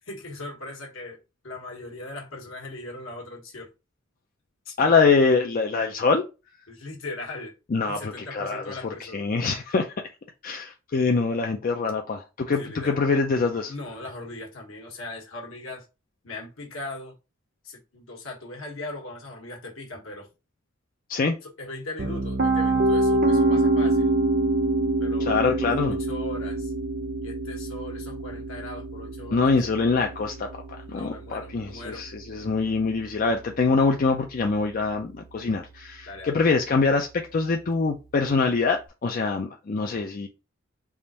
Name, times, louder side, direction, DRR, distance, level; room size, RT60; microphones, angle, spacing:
voice 1, 0.0-1.2 1.4-3.7 4.6-4.9 6.7-7.5 7.9-9.3 12.5-13.1 13.7-15.8 16.2-17.2 17.6-20.3 21.4-24.1 25.0-25.5 25.8-26.7 27.2-29.5 30.9-32.0 36.1-36.4, left 2 dB, 70° left, 1.3 m, -39 dB
voice 2, 4.8-6.2 7.7-9.9 10.4-13.7 21.1-21.4 25.2-26.0 29.3-30.5 30.9-40.3, left 4 dB, 40° left, 0.4 m, -24 dB
Piano, 22.0-33.9, right 2 dB, 50° right, 0.6 m, -26 dB
3.5 x 2.5 x 4.1 m
head